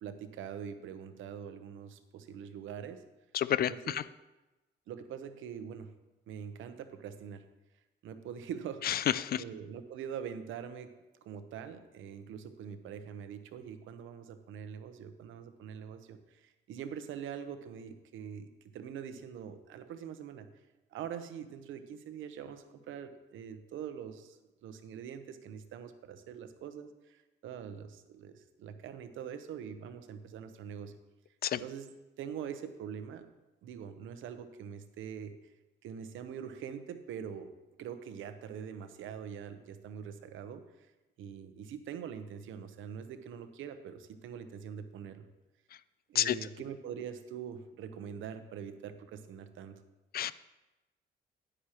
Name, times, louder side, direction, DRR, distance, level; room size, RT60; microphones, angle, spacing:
voice 1, 0.0-3.0 3.7-4.0 4.9-5.9 6.3-7.4 8.0-8.8 9.4-10.9 11.2-18.5 18.7-20.5 20.9-30.9 31.6-31.9 32.2-33.3 33.6-35.4 35.8-37.5 37.8-40.6 41.2-45.3 46.1-49.8, right 8 dB, 80° right, 9 dB, 0.8 m, -43 dB
voice 2, 3.3-4.0 8.8-9.4 31.4-31.6 46.1-46.4 50.1-50.3, left 11 dB, 50° left, 17 dB, 0.4 m, -29 dB
9.9 x 9.8 x 3.0 m, 1.1 s
cardioid pair, 90°, 20 cm